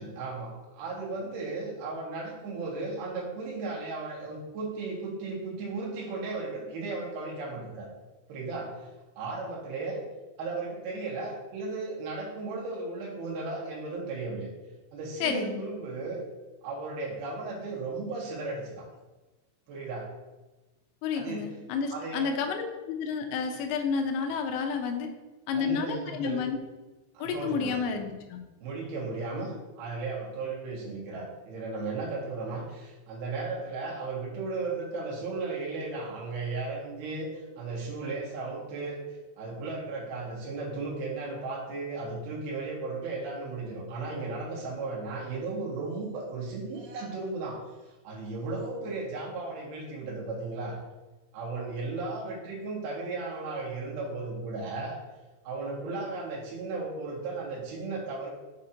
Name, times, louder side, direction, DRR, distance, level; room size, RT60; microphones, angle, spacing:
voice 1, 0.0-7.9 8.3-8.9 9.2-10.0 10.4-14.5 14.9-16.2 16.6-18.9 19.7-20.1 21.1-21.4 21.9-22.3 25.5-26.4 27.1-27.8 28.6-47.6 48.0-50.8 51.3-55.0 55.4-58.3, right 3 dB, 60° right, -3 dB, 3.1 m, -35 dB
voice 2, 15.2-15.7 21.0-25.1 25.5-26.6 27.2-28.4, left 6 dB, 80° left, 4 dB, 2.9 m, -30 dB
6.6 x 6.3 x 2.9 m, 1.1 s
omnidirectional pair, 5.6 m